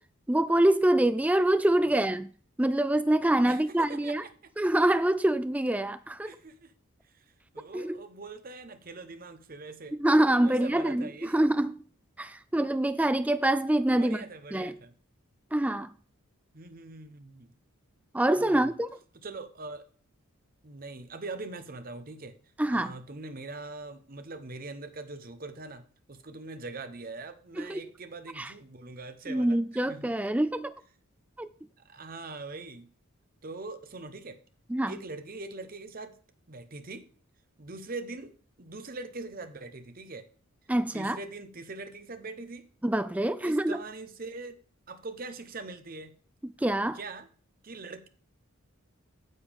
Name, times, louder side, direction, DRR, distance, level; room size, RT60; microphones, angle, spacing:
voice 1, 0.3-2.3 2.6-4.2 4.6-6.3 7.7-8.0 10.0-11.8 12.2-14.2 14.5-14.7 15.5-15.9 18.1-18.9 22.6-22.9 27.6-27.8 28.4-28.5 29.3-30.7 31.4-31.5 34.7-34.9 40.7-41.2 42.8-43.8 46.6-47.0, right 1 dB, 5° right, 0.3 m, -25 dB
voice 2, 3.4-4.5 6.2-6.7 7.0-10.0 10.4-11.6 13.9-14.9 16.5-17.5 18.4-18.8 19.1-19.9 20.6-22.3 22.7-30.1 31.8-32.9 33.4-34.4 34.9-36.2 36.5-37.1 37.6-38.3 38.6-40.3 40.9-42.7 43.4-44.5 44.9-46.1 46.9-47.3 47.6-48.1, right 3 dB, 40° right, 0.8 m, -42 dB
9.6 x 7.1 x 3.5 m
head